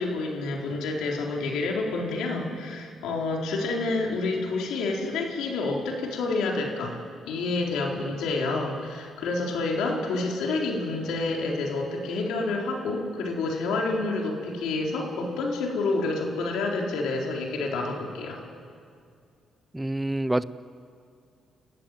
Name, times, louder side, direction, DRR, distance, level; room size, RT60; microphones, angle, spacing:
voice 1, 0.0-7.0 7.3-18.4, left 3 dB, 85° left, 0 dB, 4.2 m, -28 dB
voice 2, 19.7-20.4, right 1 dB, 10° right, 16 dB, 0.7 m, -26 dB
28.5 x 14.5 x 9.4 m, 2.3 s
cardioid pair, 90°, 0 cm